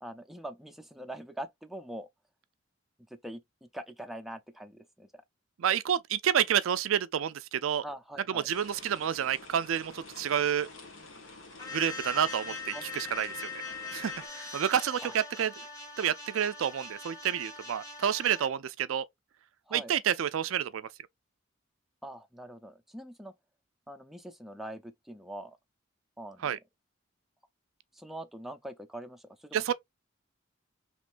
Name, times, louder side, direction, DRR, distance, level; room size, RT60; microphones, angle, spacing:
voice 1, 0.0-2.1 3.1-5.1 7.8-8.5 12.2-12.3 12.7-12.8 15.0-15.1 19.7-19.9 22.0-23.3 23.9-25.6 26.2-26.6 27.9-29.7, right 1 dB, ahead, 0.4 m, -43 dB
voice 2, 5.6-7.8 8.3-10.7 11.7-13.5 13.9-15.5 16.0-19.1 19.7-20.9 26.4-26.6 29.5-29.7, right 9 dB, 80° right, 0.4 m, -29 dB
sound 1, 8.5-14.3, left 2 dB, 70° left, 1.4 m, -49 dB
sound 2, 11.6-18.5, left 3 dB, 15° left, 1.7 m, -42 dB
5.1 x 3.1 x 2.5 m
head